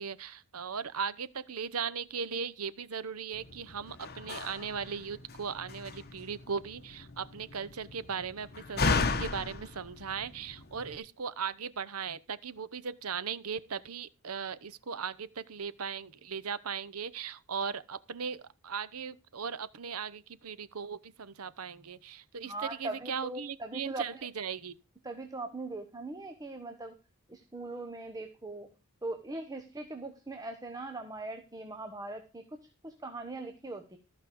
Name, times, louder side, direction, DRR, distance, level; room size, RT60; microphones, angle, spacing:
voice 1, 0.0-24.8, right 6 dB, 80° right, 0.9 m, -38 dB
Slam, 3.3-11.0, left 4 dB, 45° left, 1.2 m, -36 dB
voice 2, 22.4-24.3 25.0-27.0 27.3-28.7 29.0-34.0, right 2 dB, 15° right, 1.1 m, -40 dB
14.5 x 5.5 x 6.9 m
head